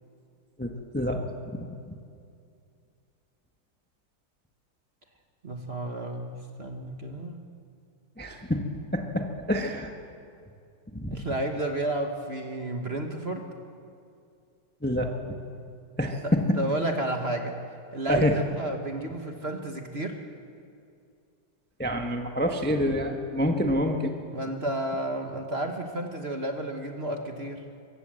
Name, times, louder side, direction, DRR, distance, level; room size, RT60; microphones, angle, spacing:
voice 1, 0.6-1.7 8.2-8.6 8.9-9.9 10.9-11.2 14.8-15.3 16.0-16.2 18.1-18.3 21.8-24.1, equal, 5° left, 3 dB, 0.9 m, -27 dB
voice 2, 5.4-7.4 11.1-13.5 16.2-17.6 17.9-20.2 24.3-27.6, right 1 dB, 35° right, 4 dB, 1.4 m, -32 dB
23.5 x 16.5 x 7.7 m, 2.4 s
omnidirectional pair, 2.2 m